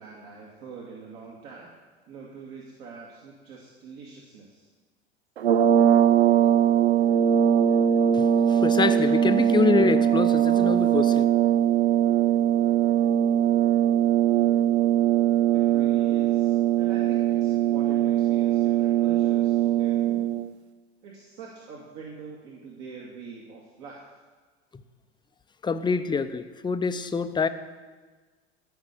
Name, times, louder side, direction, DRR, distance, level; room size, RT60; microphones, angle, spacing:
voice 1, 0.0-1.7 2.1-4.7 15.5-20.2 21.0-24.0, right 5 dB, 55° right, -3 dB, 2.2 m, -44 dB
sound 1, 5.4-20.5, right 10 dB, 80° right, 0.6 m, -21 dB
voice 2, 8.1-11.2 24.7-24.8 25.6-27.5, left 5 dB, 15° left, 10 dB, 0.7 m, -25 dB
13.5 x 5.6 x 8.2 m, 1.4 s
figure-of-eight pair, 80°, 32 cm